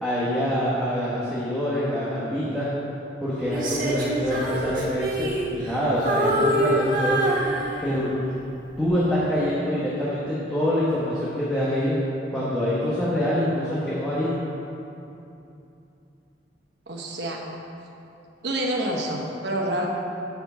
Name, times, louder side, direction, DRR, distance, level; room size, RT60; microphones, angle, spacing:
voice 1, 0.0-2.7 3.2-7.2 7.8-8.1 8.8-12.0 12.3-14.3, equal, 5° left, -10 dB, 1.3 m, -25 dB
Female singing, 3.5-5.8 6.1-8.1 8.6-8.9, right 1 dB, 50° right, 1.6 m, -25 dB
voice 2, 16.9-17.4 18.4-19.9, right 1 dB, 70° right, -1 dB, 1.2 m, -27 dB
7.9 x 5.0 x 6.8 m, 2.8 s
head